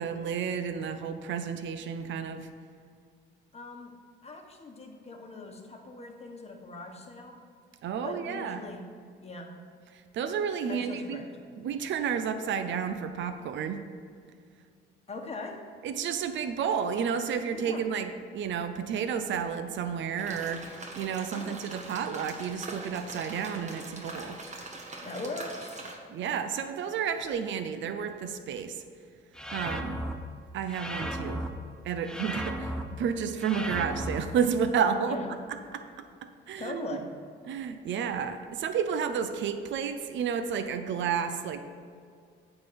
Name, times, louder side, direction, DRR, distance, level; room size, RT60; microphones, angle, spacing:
voice 1, 0.0-2.5 7.8-8.6 9.9-11.2 11.6-13.8 15.8-24.4 26.1-28.8 29.5-30.0 30.5-31.4 31.8-35.2 35.7-35.8 36.5-36.9 37.5-41.6, right 7 dB, 70° right, 9 dB, 0.6 m, -31 dB
voice 2, 3.5-3.9 4.2-7.4 8.0-8.9 9.2-9.5 10.7-11.4 15.1-15.7 17.5-17.8 21.3-21.6 25.0-25.8 35.0-35.3 36.6-37.1, left 2 dB, 30° left, 2 dB, 1.4 m, -40 dB
sound 1, 20.2-26.0, right 2 dB, 35° right, 1.4 m, -42 dB
sound 2, 29.3-30.1 30.7-31.5 32.0-32.8 33.4-34.2, equal, 5° left, 0.7 m, -35 dB
8.8 x 4.0 x 7.0 m, 2.2 s
cardioid pair, 90°, 20 cm